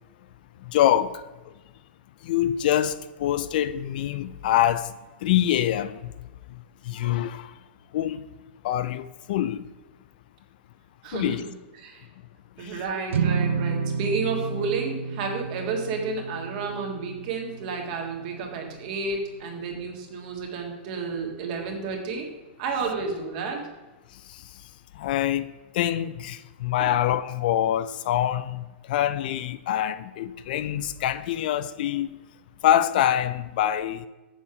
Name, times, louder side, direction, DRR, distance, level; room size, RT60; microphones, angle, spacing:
voice 1, 0.7-1.2 2.2-4.9 5.2-6.0 6.8-7.5 7.9-8.2 8.6-9.6 11.1-11.4 12.6-12.8 24.3-24.4 25.0-32.1 32.6-34.1, left 11 dB, 45° left, 0.3 m, -25 dB
voice 2, 11.0-11.4 11.8-12.0 12.6-22.3 22.6-23.6, right 4 dB, 40° right, 1.7 m, -31 dB
sound 1, 13.1-19.5, right 5 dB, 80° right, 0.6 m, -31 dB
7.2 x 7.0 x 4.8 m
supercardioid pair, 170°, 7 cm